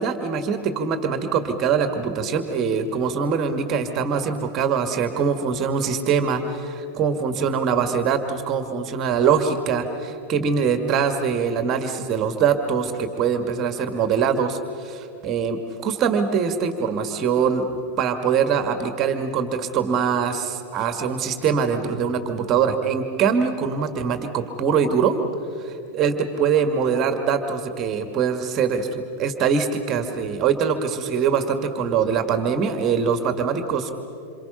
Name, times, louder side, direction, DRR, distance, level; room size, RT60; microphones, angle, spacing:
voice 1, 0.0-25.1 25.6-33.9, right 6 dB, 30° right, 7 dB, 1.8 m, -23 dB
27.5 x 27.0 x 5.7 m, 2.6 s
figure-of-eight pair, 90°, 0 cm